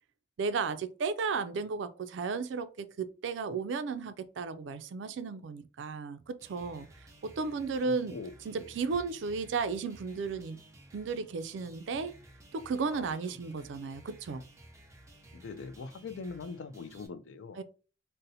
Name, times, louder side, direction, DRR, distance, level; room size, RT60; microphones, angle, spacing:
voice 1, 0.4-6.9 7.2-8.1 8.5-10.6 10.9-12.1 12.5-14.4 17.6-17.7, right 4 dB, 70° right, 0.3 m, -34 dB
sound 1, 6.4-17.1, right 1 dB, 15° right, 0.6 m, -55 dB
voice 2, 7.8-8.7 12.9-13.4 15.3-17.6, left 4 dB, 85° left, 0.3 m, -43 dB
2.7 x 2.0 x 3.9 m
head